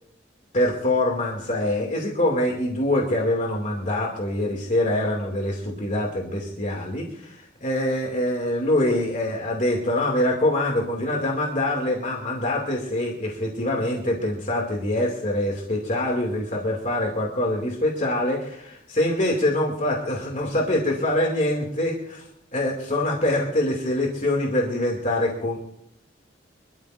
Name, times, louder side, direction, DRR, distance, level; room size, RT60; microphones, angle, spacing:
voice 1, 0.5-22.2 22.5-25.6, left 1 dB, 45° left, -1 dB, 2.6 m, -24 dB
26.0 x 14.0 x 2.7 m, 0.74 s
head